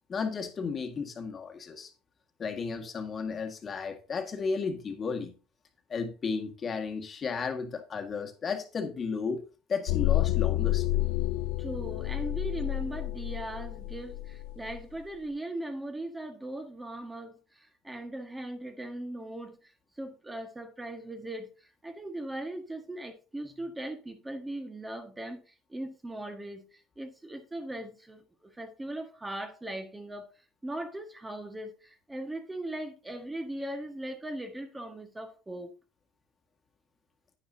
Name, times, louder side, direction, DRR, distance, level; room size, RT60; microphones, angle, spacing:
voice 1, 0.1-1.9 2.4-5.4 5.9-9.4 9.7-10.9, left 5 dB, 35° left, 1.9 m, -34 dB
sound 1, 9.9-14.8, left 15 dB, 80° left, 0.4 m, -29 dB
voice 2, 11.6-19.6 20.0-21.5 21.8-30.3 30.6-35.7, right 1 dB, 10° right, 1.7 m, -39 dB
9.8 x 9.3 x 2.8 m
supercardioid pair, 110°, 0 cm